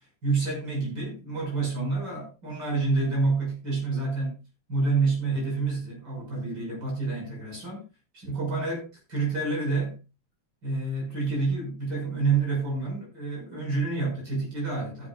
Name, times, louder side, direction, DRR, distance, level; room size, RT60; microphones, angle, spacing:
voice 1, 0.2-4.4 4.7-7.8 8.1-10.0 10.6-15.1, right 3 dB, 35° right, 6.5 m, -28 dB
15.5 x 10.5 x 2.4 m
omnidirectional pair, 3.4 m